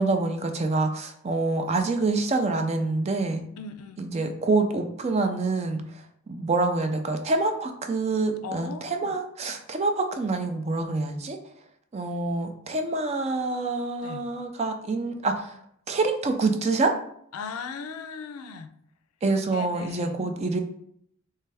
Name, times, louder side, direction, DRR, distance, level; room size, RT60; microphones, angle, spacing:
voice 1, 0.0-3.4 4.0-11.4 11.9-15.6 15.9-16.9 19.2-20.6, right 3 dB, 30° right, 6 dB, 0.4 m, -26 dB
voice 2, 3.6-4.1 8.4-9.1 14.0-14.2 17.3-18.7 19.5-20.3, left 5 dB, 85° left, 9 dB, 0.4 m, -38 dB
3.3 x 3.3 x 3.3 m, 0.68 s
head